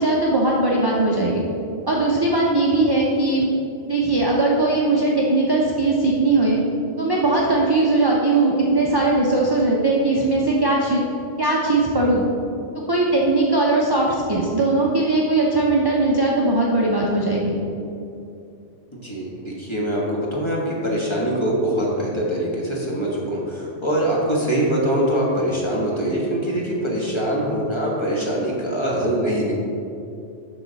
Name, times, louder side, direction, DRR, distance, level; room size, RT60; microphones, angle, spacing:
voice 1, 0.0-1.4 1.8-3.5 3.9-6.6 7.0-11.0 11.4-12.2 12.9-17.6, right 2 dB, 25° right, -3 dB, 0.6 m, -19 dB
voice 2, 18.9-29.5, right 1 dB, 25° left, -4 dB, 1.4 m, -23 dB
12.0 x 4.0 x 4.0 m, 2.7 s
omnidirectional pair, 1.3 m